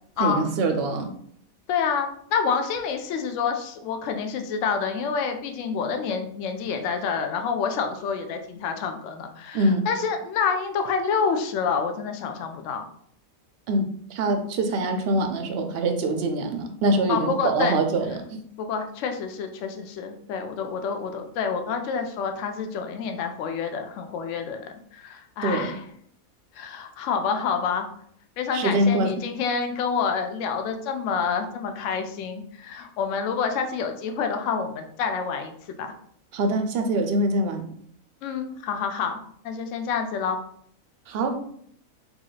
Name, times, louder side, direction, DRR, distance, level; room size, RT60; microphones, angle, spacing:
voice 1, 0.2-1.1 9.5-9.8 13.7-18.4 25.4-25.8 28.5-29.1 36.3-37.7 41.1-41.4, right 2 dB, 65° right, 5 dB, 0.6 m, -24 dB
voice 2, 1.7-12.8 17.1-17.8 18.6-25.8 26.5-27.9 28.4-35.9 38.2-39.2 39.4-40.4, left 6 dB, 70° left, 6 dB, 0.8 m, -28 dB
2.9 x 2.8 x 3.8 m, 0.65 s
omnidirectional pair, 1.5 m